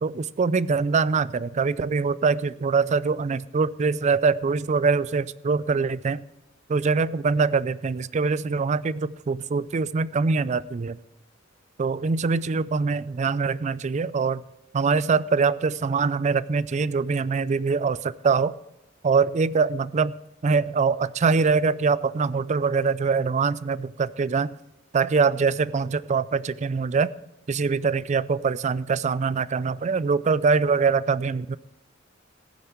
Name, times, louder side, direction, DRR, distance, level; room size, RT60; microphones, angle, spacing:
voice 1, 0.0-6.2 6.7-11.0 11.8-14.4 14.7-18.5 19.0-20.2 20.4-24.5 24.9-27.1 27.5-31.6, right 5 dB, 35° right, 18 dB, 0.4 m, -23 dB
16.0 x 9.2 x 4.5 m, 0.96 s
head